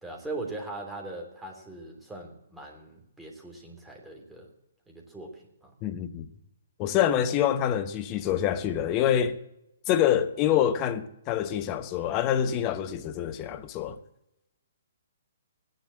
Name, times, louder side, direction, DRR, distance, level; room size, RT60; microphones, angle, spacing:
voice 1, 0.0-4.5 4.9-5.7 7.2-7.3, right 2 dB, 5° right, 3.2 m, -40 dB
voice 2, 5.8-6.3 6.8-9.4 9.9-14.0, left 10 dB, 30° left, 1.0 m, -26 dB
16.0 x 10.5 x 7.6 m
figure-of-eight pair, 125°, 0 cm